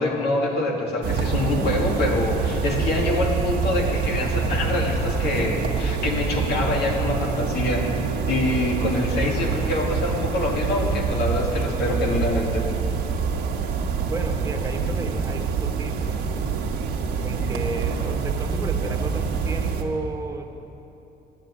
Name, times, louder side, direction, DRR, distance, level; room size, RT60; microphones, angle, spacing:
voice 1, 0.0-7.9 8.2-12.6, left 2 dB, 75° left, 0 dB, 2.2 m, -25 dB
sound 1, 1.0-19.8, right 5 dB, 75° right, 1.4 m, -26 dB
voice 2, 14.1-16.4 17.2-20.5, right 2 dB, 20° right, 2 dB, 1.3 m, -33 dB
9.9 x 8.9 x 9.4 m, 3.0 s
cardioid pair, 110°, 17 cm